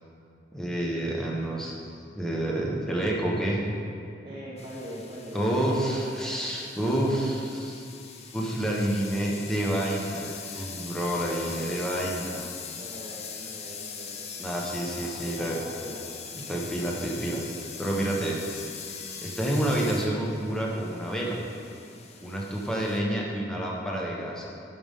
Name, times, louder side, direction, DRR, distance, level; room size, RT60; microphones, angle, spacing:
voice 1, 0.5-1.8 2.1-3.6 5.3-7.8 8.3-12.4 14.4-15.6 16.5-17.4 17.8-18.6 19.2-21.4 22.2-24.4, right 1 dB, 5° left, -3 dB, 1.0 m, -28 dB
voice 2, 4.2-6.1 6.8-7.4 11.4-12.4 12.8-14.3 14.7-16.1, equal, 25° right, -7 dB, 1.0 m, -43 dB
sound 1, 4.6-23.0, left 6 dB, 35° left, 0.6 m, -41 dB
12.0 x 5.4 x 3.6 m, 2.6 s
head